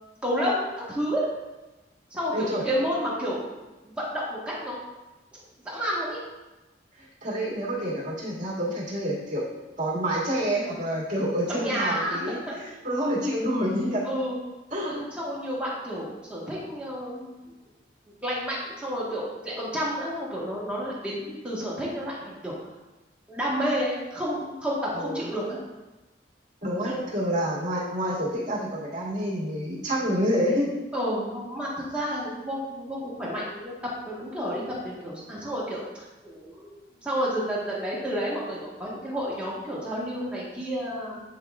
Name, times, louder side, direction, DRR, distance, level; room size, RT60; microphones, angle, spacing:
voice 1, 0.2-1.3 2.1-3.4 3.8-4.8 5.7-6.2 11.5-12.4 14.0-14.4 14.9-17.4 18.2-22.5 23.3-25.6 26.8-27.0 30.9-41.2, equal, 5° right, -7 dB, 1.3 m, -30 dB
voice 2, 2.3-2.6 7.2-9.4 9.8-14.0 14.7-15.0 24.9-25.2 26.6-30.7, equal, 40° right, -6 dB, 2.1 m, -28 dB
8.9 x 4.7 x 2.4 m, 1.1 s
head